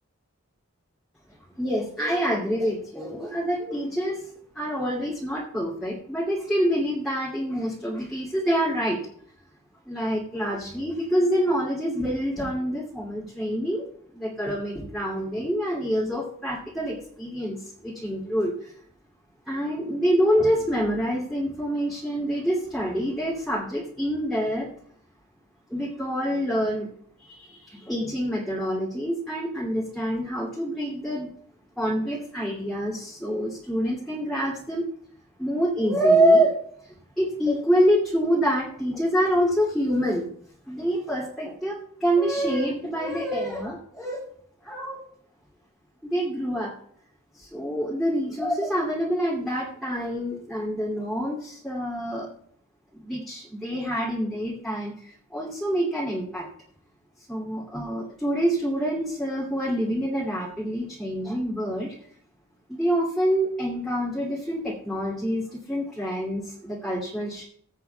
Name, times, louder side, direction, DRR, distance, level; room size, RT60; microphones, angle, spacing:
voice 1, 1.6-4.3 4.5-9.0 9.9-13.8 14.1-18.7 19.4-24.7 25.7-26.9 27.2-31.3 31.8-34.8 35.4-36.6 37.2-40.3 40.7-44.2 44.6-45.0 46.0-46.7 47.3-52.3 52.9-56.5 57.3-61.9 62.7-67.5, equal, ahead, -6 dB, 2.5 m, -26 dB
21.0 x 8.3 x 2.3 m, 0.62 s
head